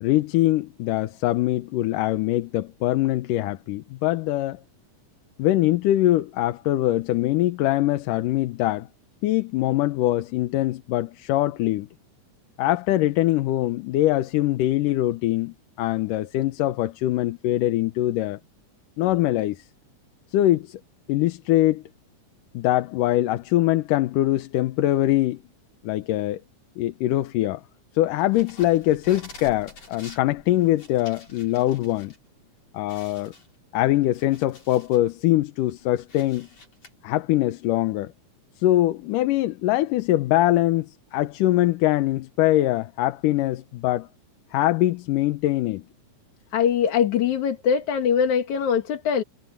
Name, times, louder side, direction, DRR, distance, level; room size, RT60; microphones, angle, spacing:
voice 1, 0.0-4.6 5.4-8.9 9.2-11.9 12.6-18.4 19.0-19.6 20.3-20.8 21.1-21.8 22.5-25.4 25.8-26.4 26.8-27.6 27.9-32.1 32.7-33.3 33.7-36.5 37.0-38.1 38.6-44.1 44.5-45.8, left 15 dB, 90° left, 2.5 m, -23 dB
sound 1, 28.2-32.2 32.5-32.6 32.9-35.1 35.5-36.9, left 3 dB, 50° left, 7.5 m, -47 dB
voice 2, 46.5-49.2, left 7 dB, 65° left, 3.1 m, -22 dB
omnidirectional pair, 3.6 m